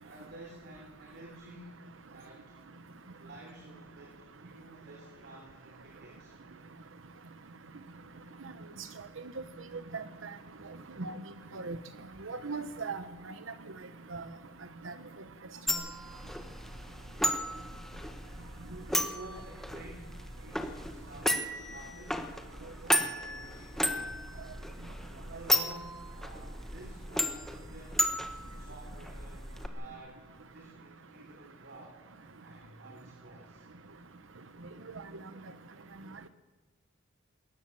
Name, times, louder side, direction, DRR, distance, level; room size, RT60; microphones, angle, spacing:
voice 1, 0.0-2.6 3.2-6.4 14.8-14.9 18.7-24.4 25.2-28.0 28.5-30.2 30.5-32.0 32.4-33.7, right 2 dB, 55° right, 1 dB, 3.7 m, -51 dB
voice 2, 9.9-10.3 11.0-11.2 11.5-11.8 12.2-13.0 14.1-14.2 14.8-14.9, right 4 dB, 70° right, 11 dB, 0.9 m, -37 dB
sound 1, 15.7-29.7, left 1 dB, ahead, 1.3 m, -34 dB
21.5 x 18.5 x 7.4 m, 1.2 s
head